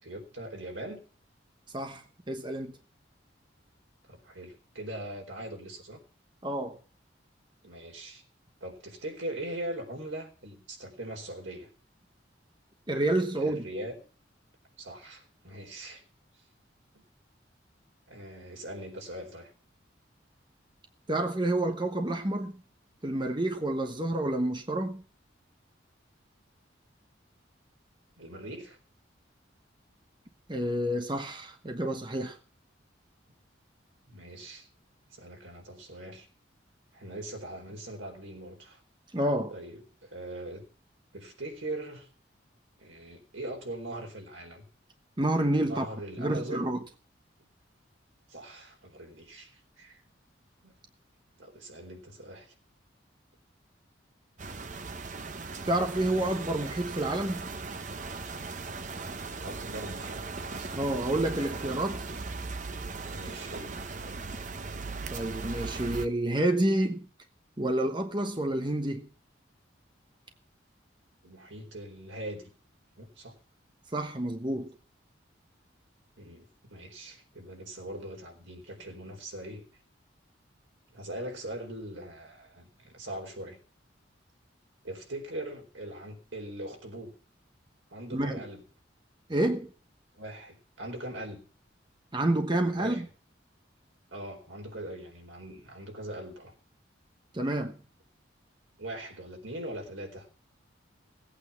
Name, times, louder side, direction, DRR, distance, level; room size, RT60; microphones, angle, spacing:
voice 1, 0.0-1.0 4.1-6.0 7.6-8.2 8.6-11.7 13.4-13.9 14.8-16.0 16.9-17.0 18.1-19.5 28.2-28.8 34.1-34.7 35.1-36.3 36.9-38.8 39.5-40.6 41.1-42.1 42.8-44.7 45.7-46.6 47.4-47.5 48.3-50.0 50.6-50.7 51.4-52.5 59.4-60.3 60.5-60.7 61.5-61.7 63.1-64.2 71.2-72.5 73.0-73.4 76.2-79.6 80.9-83.6 84.8-87.2 87.9-88.6 90.2-91.4 92.8-93.0 94.1-96.5 98.8-100.3, right 1 dB, 90° right, 4.4 m, -41 dB
voice 2, 1.7-2.8 6.4-6.8 12.9-13.6 21.1-22.6 23.0-25.0 30.5-32.4 39.1-39.5 45.2-45.9 46.2-46.8 55.7-57.5 60.7-62.0 65.1-67.0 67.6-69.1 73.9-74.7 88.1-88.4 89.3-89.7 92.1-93.1 97.3-97.8, right 1 dB, 25° right, 1.1 m, -29 dB
sound 1, 54.4-66.1, right 4 dB, 40° right, 0.8 m, -38 dB
18.0 x 8.6 x 5.8 m
head